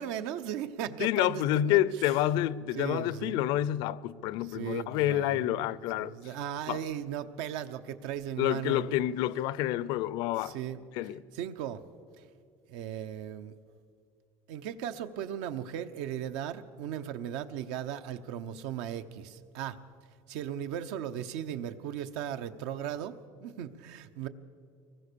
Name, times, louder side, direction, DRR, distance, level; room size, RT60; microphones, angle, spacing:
voice 1, 0.0-1.8 2.7-3.4 4.5-5.6 6.0-9.0 10.4-10.8 11.3-11.8 12.7-13.5 14.5-19.8 20.3-24.3, right 10 dB, 75° right, 1.0 m, -37 dB
voice 2, 1.0-6.1 6.7-6.9 8.4-10.6 10.9-11.2, left 13 dB, 60° left, 0.5 m, -28 dB
24.0 x 20.0 x 6.9 m
cardioid pair, 160°, 9 cm